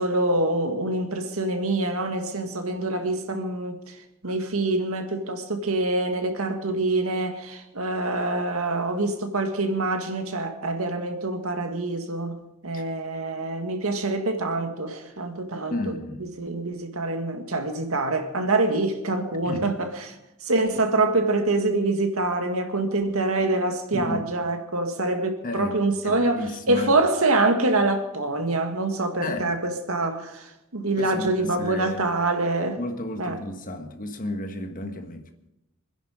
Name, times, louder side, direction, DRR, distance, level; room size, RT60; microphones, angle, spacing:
voice 1, 0.0-3.8 4.2-15.8 16.4-20.0 20.5-26.4 26.7-30.4 30.7-32.8 33.2-33.3, right 2 dB, 70° right, 2.0 m, -25 dB
voice 2, 15.7-16.2 19.4-19.8 23.9-24.3 25.4-25.8 26.0-27.0 29.2-29.6 31.0-32.0 32.7-35.3, left 1 dB, 40° left, 1.5 m, -32 dB
25.0 x 10.5 x 5.0 m
head